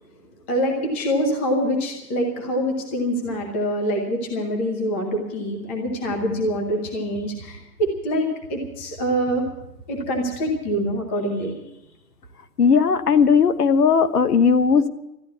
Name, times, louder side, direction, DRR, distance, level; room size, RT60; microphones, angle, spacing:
voice 1, 0.5-9.4 9.9-11.5, equal, 10° left, 2 dB, 0.8 m, -25 dB
voice 2, 12.6-14.9, left 6 dB, 70° left, 11 dB, 1.3 m, -17 dB
13.5 x 9.8 x 9.5 m, 0.88 s
hypercardioid pair, 160°, 48 cm